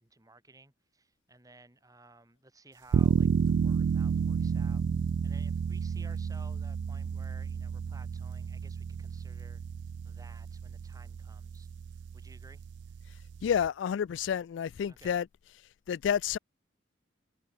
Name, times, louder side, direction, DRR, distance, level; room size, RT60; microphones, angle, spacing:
voice 1, 0.0-4.8 5.2-9.6 10.0-12.6 14.9-15.2, right 2 dB, 20° right, 3.2 m, -57 dB
sound 1, 2.9-13.7, right 6 dB, 70° right, 0.3 m, -31 dB
voice 2, 13.4-15.3 15.9-16.4, left 8 dB, 80° left, 0.3 m, -29 dB
head